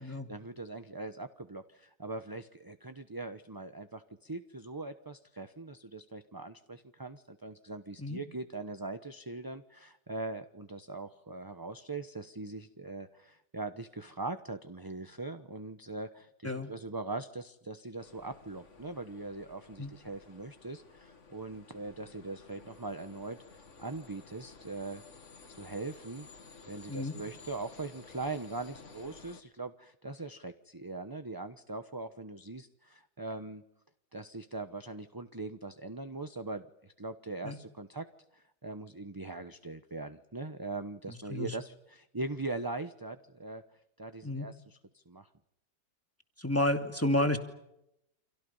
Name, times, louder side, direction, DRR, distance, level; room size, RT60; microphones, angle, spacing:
voice 1, 0.0-25.0 25.6-26.3 26.7-33.6 34.1-38.0 38.3-43.6 44.0-45.3, right 3 dB, 15° right, 9 dB, 0.8 m, -41 dB
sound 1, 18.0-29.4, left 4 dB, 45° left, 2.3 m, -54 dB
voice 2, 46.4-47.4, left 1 dB, 10° left, 6 dB, 2.4 m, -30 dB
30.0 x 26.5 x 5.6 m, 0.81 s
omnidirectional pair, 1.9 m